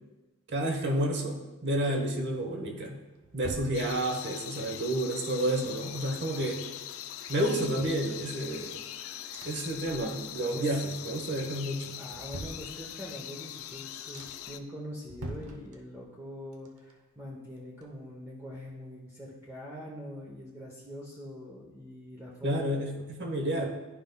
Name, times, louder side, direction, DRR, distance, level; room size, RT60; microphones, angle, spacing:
voice 1, 0.5-3.0 3.3-6.6 7.3-8.8 9.4-12.0 22.4-23.7, right 1 dB, 50° right, 2 dB, 1.0 m, -30 dB
sound 1, 2.7-4.4 5.1-6.6 6.9-7.0 7.3-8.9 9.3-10.5 10.8-11.3 11.8-13.2 13.7-13.8 14.1-14.6 15.0-16.2 16.5-18.3 18.7-18.8, right 1 dB, 80° right, 0.8 m, -47 dB
sound 2, 3.7-14.6, left 11 dB, 65° left, 0.4 m, -42 dB
voice 2, 12.0-22.6, equal, 10° right, -5 dB, 0.8 m, -43 dB
11.5 x 5.2 x 2.2 m, 1.2 s
head